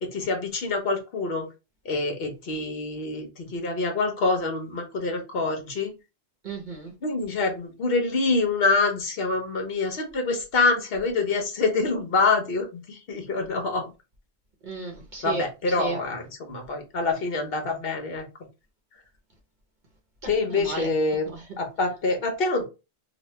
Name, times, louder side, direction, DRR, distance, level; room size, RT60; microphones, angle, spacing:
voice 1, 0.0-1.5 1.8-5.9 7.0-13.9 15.2-18.2 20.3-21.3 21.6-22.7, left 3 dB, 65° left, 1.1 m, -26 dB
voice 2, 6.4-6.9 14.6-16.0 20.2-20.9 21.3-21.4, right 3 dB, 50° right, 0.9 m, -34 dB
3.1 x 2.2 x 3.1 m
omnidirectional pair, 1.1 m